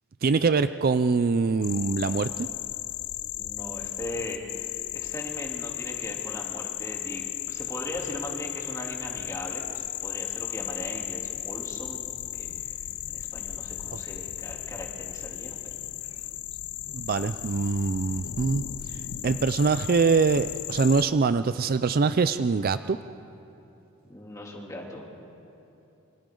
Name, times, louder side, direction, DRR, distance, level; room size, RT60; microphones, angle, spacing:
voice 1, 0.2-2.5 16.9-18.6 19.2-23.0, right 4 dB, 40° right, 11 dB, 0.4 m, -23 dB
sound 1, 1.6-21.0, left 13 dB, 80° left, 0.6 m, -35 dB
voice 2, 3.3-12.0 12.3-12.7 13.1-15.8 24.1-25.0, left 1 dB, 15° left, -2 dB, 3.1 m, -39 dB
28.0 x 26.0 x 3.9 m, 2.9 s
head